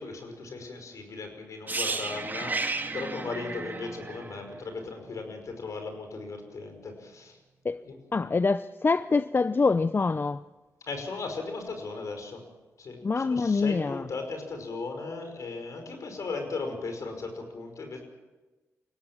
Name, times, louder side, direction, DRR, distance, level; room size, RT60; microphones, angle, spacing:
voice 1, 0.0-7.4 7.8-8.0 10.9-12.4 12.8-18.0, left 3 dB, 65° left, 5 dB, 5.5 m, -37 dB
sound 1, 1.7-5.5 5.8-6.0, right 3 dB, 30° right, 2.3 m, -34 dB
voice 2, 8.1-10.4 13.0-14.1, left 4 dB, 35° left, 14 dB, 0.6 m, -25 dB
23.0 x 17.0 x 7.5 m, 1.2 s
supercardioid pair, 55°, 6 cm